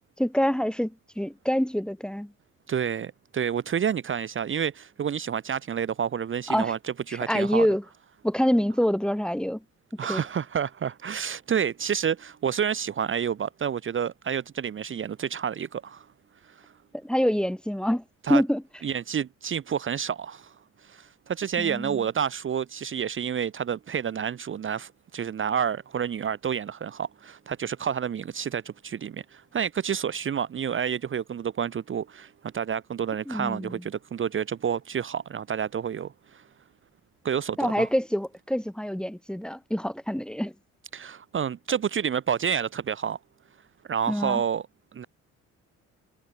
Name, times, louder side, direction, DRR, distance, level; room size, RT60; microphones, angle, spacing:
voice 1, 0.2-2.3 6.5-6.7 7.1-7.8 8.2-9.6 10.1-10.2 17.0-18.0 18.3-18.6 21.6-22.0 33.3-33.8 37.6-40.5 44.1-44.4, equal, 5° left, 1.6 m, -26 dB
voice 2, 2.7-7.7 10.0-16.1 16.6-16.7 18.2-18.4 18.8-20.5 20.8-36.4 37.2-37.9 40.9-43.2 43.9-44.7 44.9-45.0, right 8 dB, 40° right, 0.9 m, -29 dB
cardioid pair, 90°, 30 cm